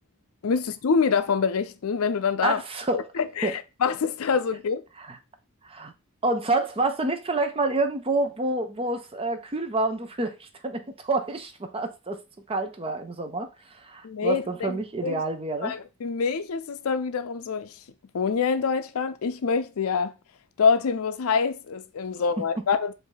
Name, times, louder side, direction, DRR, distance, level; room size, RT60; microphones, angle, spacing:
voice 1, 0.4-2.6 2.9-4.8 14.0-15.2 15.6-17.7 18.1-20.1 20.6-22.9, left 5 dB, 70° left, 0.4 m, -26 dB
voice 2, 2.4-3.0 3.4-3.5 5.1-5.2 5.6-5.9 6.2-12.2 12.5-15.7, right 2 dB, 25° right, 0.5 m, -28 dB
5.0 x 2.6 x 3.9 m
head